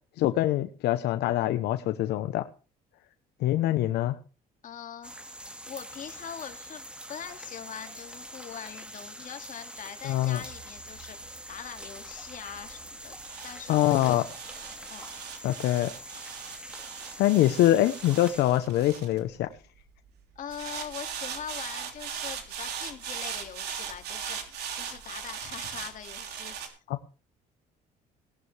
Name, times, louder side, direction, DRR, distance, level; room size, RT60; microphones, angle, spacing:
voice 1, 0.2-2.4 3.4-4.2 10.0-10.4 13.7-14.2 15.4-15.9 17.2-19.5 26.9-27.2, left 14 dB, 80° left, 10 dB, 0.9 m, -24 dB
voice 2, 4.6-13.2 13.4-14.2 14.9-15.1 17.4-17.5 20.4-26.8, left 8 dB, 50° left, 6 dB, 2.3 m, -42 dB
sound 1, 5.0-18.4, right 1 dB, 5° right, 1.8 m, -44 dB
sound 2, 10.5-19.8 20.5-26.7, right 8 dB, 75° right, 3.3 m, -39 dB
18.5 x 11.0 x 3.3 m, 0.35 s
cardioid pair, 110°, 17 cm